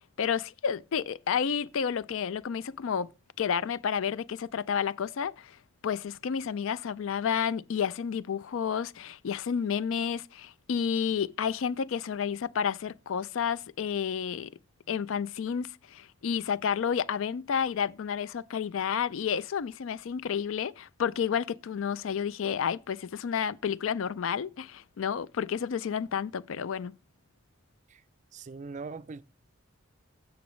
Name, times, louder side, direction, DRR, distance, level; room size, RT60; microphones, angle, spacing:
voice 1, 0.2-3.1 3.4-5.6 5.8-14.5 14.9-26.9, left 7 dB, 65° left, 0.4 m, -30 dB
voice 2, 28.3-29.2, right 4 dB, 35° right, 0.4 m, -41 dB
15.5 x 6.1 x 3.1 m
head